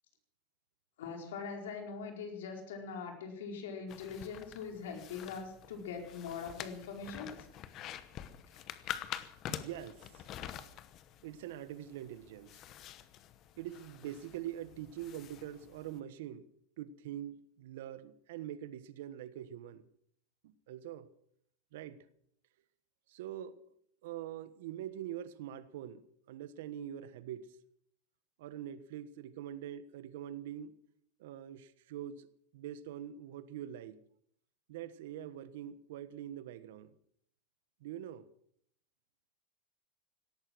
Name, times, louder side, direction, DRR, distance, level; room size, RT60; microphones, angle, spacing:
voice 1, 1.0-7.3, left 5 dB, 90° left, 4.6 m, -42 dB
sound 1, 3.9-16.0, left 11 dB, 30° left, 1.0 m, -47 dB
voice 2, 9.5-10.3 11.2-12.6 13.6-16.4 16.8-19.8 20.4-21.1 21.7-22.1 23.1-23.6 24.0-27.5 28.4-30.8 31.2-34.0 34.7-36.9 37.8-38.2, right 11 dB, 65° right, 1.2 m, -44 dB
18.0 x 13.0 x 6.2 m
supercardioid pair, 170°, 0 cm